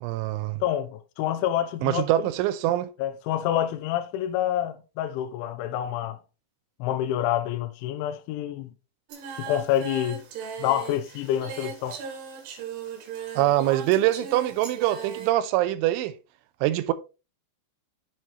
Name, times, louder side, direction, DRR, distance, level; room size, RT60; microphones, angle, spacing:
voice 1, 0.0-0.6 1.8-2.9 13.4-16.1 16.6-16.9, right 14 dB, 90° right, 3.1 m, -24 dB
voice 2, 0.6-2.1 3.0-6.2 6.8-8.7 9.4-10.2 10.6-12.0, left 11 dB, 90° left, 3.1 m, -27 dB
Singing, 9.1-15.3, right 7 dB, 70° right, 3.5 m, -38 dB
7.7 x 6.7 x 3.1 m
omnidirectional pair, 5.4 m